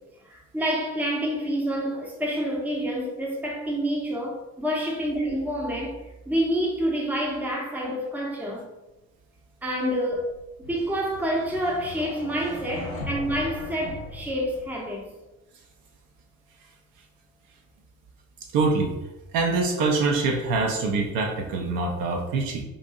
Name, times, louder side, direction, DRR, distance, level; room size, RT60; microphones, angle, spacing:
voice 1, 0.3-5.9 6.3-8.6 9.6-10.3 10.6-15.1, equal, 5° right, 0.7 m, -28 dB
sound 1, 10.1-15.0, left 2 dB, 85° left, 0.5 m, -39 dB
voice 2, 18.5-18.9 19.3-22.6, right 3 dB, 55° right, 0.6 m, -24 dB
4.0 x 2.5 x 2.4 m
figure-of-eight pair, 45°, 41 cm